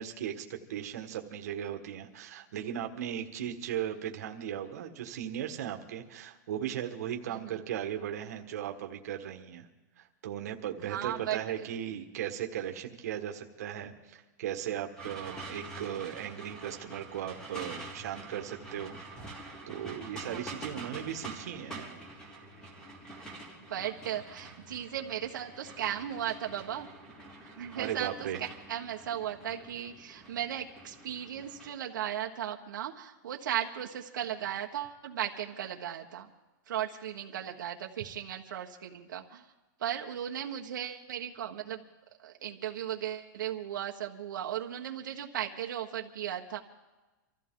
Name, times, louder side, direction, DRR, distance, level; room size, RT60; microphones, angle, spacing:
voice 1, 0.0-9.7 10.0-19.0 19.7-22.1 27.7-28.4, right 10 dB, 55° right, 4 dB, 1.6 m, -37 dB
voice 2, 10.9-11.7 15.1-15.4 20.2-20.9 23.7-26.9 27.6-36.3 36.7-39.4 39.8-41.8 42.2-46.6, right 10 dB, 80° right, 1 dB, 1.3 m, -36 dB
sound 1, 15.0-31.7, right 2 dB, 5° left, 2.0 m, -46 dB
25.0 x 14.5 x 3.8 m, 1.1 s
supercardioid pair, 180°, 10 cm